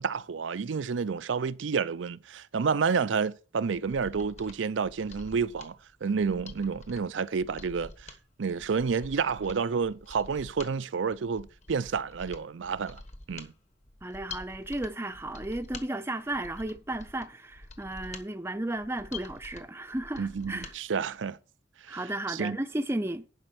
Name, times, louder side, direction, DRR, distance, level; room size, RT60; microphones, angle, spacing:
voice 1, 0.0-5.8 6.0-8.1 8.4-13.0 13.3-13.5 20.2-21.4 21.9-22.0 22.3-22.6, right 5 dB, 85° right, 0.5 m, -30 dB
Mechanisms, 3.7-20.8 21.1-21.2, left 3 dB, 40° left, 1.3 m, -47 dB
voice 2, 14.0-20.7 21.9-23.3, right 1 dB, 15° right, 0.5 m, -34 dB
11.0 x 5.3 x 6.0 m
head